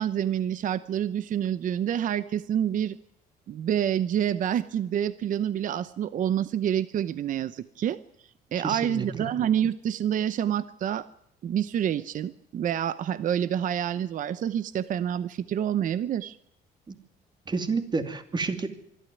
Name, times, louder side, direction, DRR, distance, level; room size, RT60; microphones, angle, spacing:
voice 1, 0.0-3.0 3.5-8.0 8.5-11.0 11.4-16.4, right 10 dB, 50° right, 15 dB, 0.8 m, -27 dB
voice 2, 8.6-9.3 16.9-17.0 17.5-18.7, right 4 dB, 25° right, 8 dB, 2.6 m, -30 dB
24.0 x 13.0 x 9.3 m, 0.75 s
cardioid pair, 110°, 17 cm